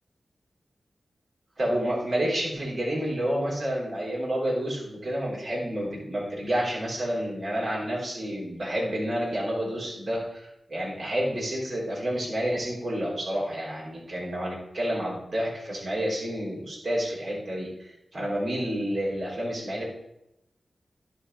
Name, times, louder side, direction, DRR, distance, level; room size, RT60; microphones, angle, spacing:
voice 1, 1.6-17.7 18.1-19.8, equal, 50° right, -5 dB, 3.9 m, -29 dB
11.0 x 4.6 x 5.6 m, 0.86 s
cardioid pair, 60°, 0 cm